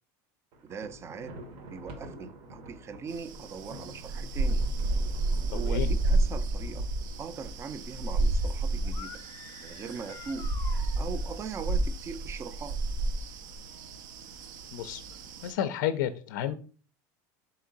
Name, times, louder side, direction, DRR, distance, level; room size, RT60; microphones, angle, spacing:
Thunder, 0.5-7.8, right 2 dB, 60° right, 0.9 m, -47 dB
voice 1, 0.6-1.4 1.7-4.6 5.3-6.9 7.2-9.2 9.6-12.8, right 5 dB, 25° right, 0.4 m, -40 dB
sound 1, 3.1-15.5, right 2 dB, 85° right, 0.5 m, -31 dB
voice 2, 5.5-5.9 14.7-15.0 15.4-16.5, left 11 dB, 85° left, 0.4 m, -31 dB
sound 2, 8.8-11.4, left 8 dB, 35° left, 0.7 m, -48 dB
3.6 x 2.9 x 3.9 m
supercardioid pair, 110°, 10 cm